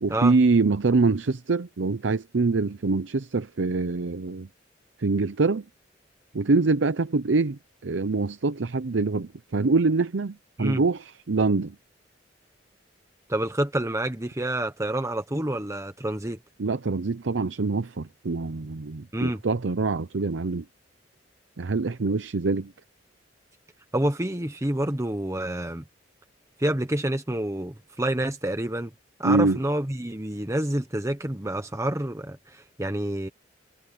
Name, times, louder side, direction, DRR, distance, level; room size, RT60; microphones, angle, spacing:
voice 1, 0.0-4.5 5.0-5.6 6.3-11.7 16.6-20.6 21.6-22.7 29.2-29.6, right 3 dB, 75° right, 0.7 m, -24 dB
voice 2, 13.3-16.4 19.1-19.4 23.9-25.8 26.6-28.9 29.2-33.3, right 1 dB, 15° right, 1.1 m, -28 dB
head